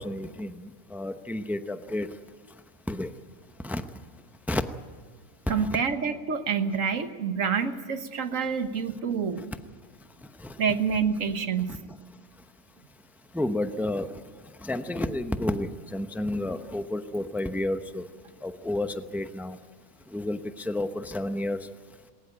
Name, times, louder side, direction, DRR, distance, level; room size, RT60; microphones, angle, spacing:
voice 1, 0.0-2.1 2.9-3.1 3.6-3.8 4.5-4.6 5.6-5.7 9.4-9.5 10.4-10.5 13.3-14.1 14.6-18.0 18.4-19.6 20.1-21.6, left 1 dB, ahead, 9 dB, 0.5 m, -31 dB
voice 2, 5.5-9.5 10.6-11.8, right 6 dB, 60° right, 9 dB, 1.6 m, -27 dB
20.5 x 18.5 x 9.0 m, 1.5 s
omnidirectional pair, 1.6 m